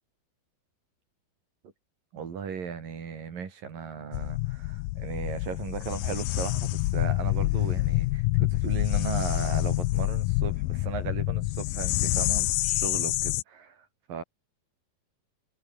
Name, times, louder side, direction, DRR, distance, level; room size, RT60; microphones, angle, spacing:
voice 1, 2.1-14.2, right 6 dB, 60° right, 5.2 m, -37 dB
sound 1, 4.1-13.4, left 19 dB, 80° left, 2.3 m, -27 dB
omnidirectional pair, 4.4 m